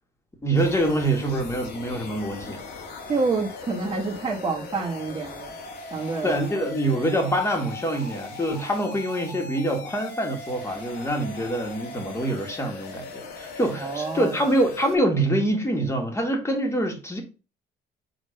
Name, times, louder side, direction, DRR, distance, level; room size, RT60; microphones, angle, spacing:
voice 1, 0.4-2.6 6.2-17.2, right 1 dB, 15° left, 1.9 m, -25 dB
sound 1, 0.6-15.0, left 3 dB, 70° left, 1.9 m, -39 dB
voice 2, 3.1-5.5 5.9-6.4 13.8-14.3, right 4 dB, 30° right, 1.3 m, -28 dB
5.0 x 3.7 x 5.1 m
cardioid pair, 110°, 17 cm